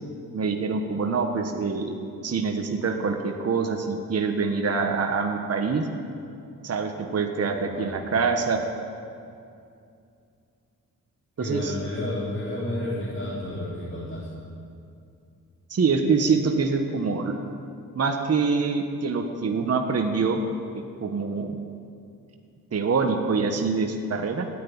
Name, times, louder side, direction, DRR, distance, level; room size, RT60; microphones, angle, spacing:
voice 1, 0.3-1.9 2.2-5.9 6.6-8.6 11.4-11.7 15.7-17.4 17.9-20.4 20.7-21.6 22.7-24.5, right 4 dB, 45° right, 3 dB, 1.4 m, -25 dB
voice 2, 7.4-8.0 11.4-14.3, left 1 dB, 35° left, -9 dB, 4.3 m, -31 dB
13.5 x 9.4 x 9.8 m, 2.5 s
cardioid pair, 80°, 33 cm